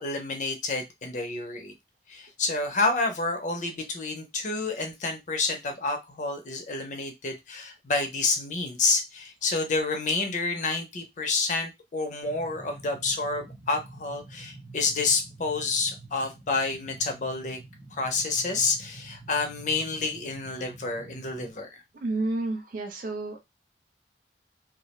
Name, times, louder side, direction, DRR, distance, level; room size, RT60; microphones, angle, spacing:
voice 1, 0.0-1.7 2.1-17.6 17.9-21.7, left 3 dB, 45° left, 5 dB, 0.5 m, -29 dB
sound 1, 12.2-21.5, right 2 dB, 20° right, 0.7 m, -47 dB
voice 2, 21.9-23.4, right 2 dB, 50° right, 4 dB, 0.4 m, -30 dB
2.3 x 2.0 x 2.9 m, 0.21 s
head